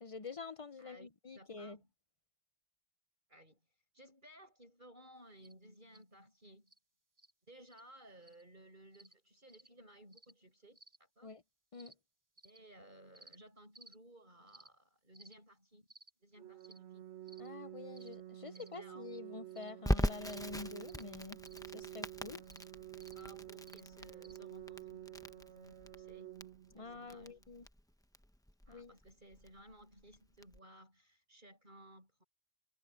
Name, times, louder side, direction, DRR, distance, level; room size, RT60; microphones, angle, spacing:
voice 1, 0.0-1.8 11.2-11.4 11.7-11.9 17.4-21.4 21.7-22.4 26.7-27.7 28.7-28.9, left 4 dB, 40° left, 0.6 m, -47 dB
voice 2, 1.3-1.9 3.3-3.6 3.9-6.7 7.5-11.3 12.4-15.9 16.2-17.0 18.5-19.1 22.8-26.3 26.8-27.4 28.7-32.2, right 1 dB, 50° right, 8.4 m, -59 dB
sound 1, 5.4-5.5 5.9-6.0 6.7-6.8 7.2-7.3 7.7-7.8 8.2-8.4 8.9-9.1 9.5-9.7 10.1-10.3 10.7-11.0 11.7-11.9 12.4-12.6 13.1-13.4 13.7-13.9 14.5-14.7 15.1-15.3 15.9-16.1 16.6-16.8 17.3-17.5 17.9-18.2 18.5-18.8 19.5-19.7 20.2-20.4 20.9-21.0 21.4-21.6 22.5-22.6 23.0-23.2 23.7-23.8 24.2-24.4, right 2 dB, 20° right, 1.2 m, -60 dB
Organ, 16.4-27.4, right 13 dB, 90° right, 1.2 m, -51 dB
Crackle, 19.8-30.6, equal, 5° left, 0.9 m, -41 dB
omnidirectional pair, 1.1 m